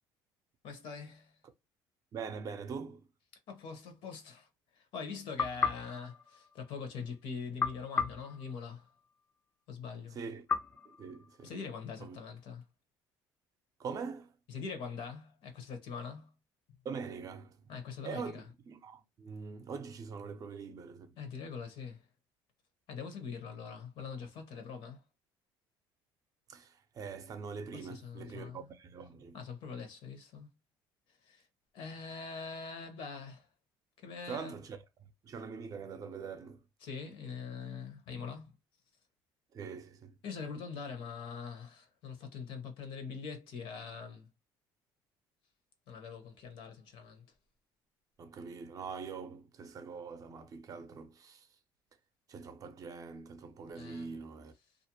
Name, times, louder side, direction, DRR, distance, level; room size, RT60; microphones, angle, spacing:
voice 1, 0.6-1.4 3.5-8.9 9.7-10.2 11.4-12.7 14.5-16.3 17.7-18.5 21.2-22.1 22.9-25.0 27.7-28.7 29.3-30.5 31.1-31.5 31.7-33.5 34.0-34.6 36.8-38.6 40.2-44.3 45.9-47.4 53.7-54.2 54.7-54.8, left 5 dB, 65° left, 0.9 m, -43 dB
voice 2, 2.1-3.1 10.2-10.4 10.9-11.5 12.0-12.2 13.8-14.3 16.8-17.7 18.0-18.3 18.7-21.2 26.5-29.4 34.3-34.8 35.2-36.7 39.5-40.1 48.2-51.5 52.3-54.5, right 5 dB, 40° right, 0.5 m, -43 dB
sound 1, 5.4-7.0 7.6-9.2 10.5-11.8, left 5 dB, 25° left, 0.5 m, -36 dB
2.5 x 2.0 x 2.9 m
cardioid pair, 110°, 9 cm